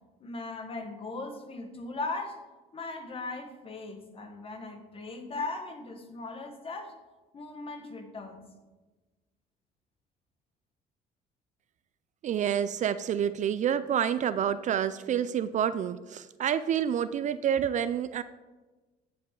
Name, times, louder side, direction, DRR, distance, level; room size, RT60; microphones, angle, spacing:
voice 1, 0.2-2.4 2.7-6.9 7.3-8.5, left 3 dB, 35° left, 4 dB, 1.6 m, -38 dB
voice 2, 12.2-18.2, right 9 dB, 45° right, 14 dB, 0.4 m, -28 dB
14.5 x 5.6 x 3.8 m, 1.2 s
cardioid pair, 110°, 17 cm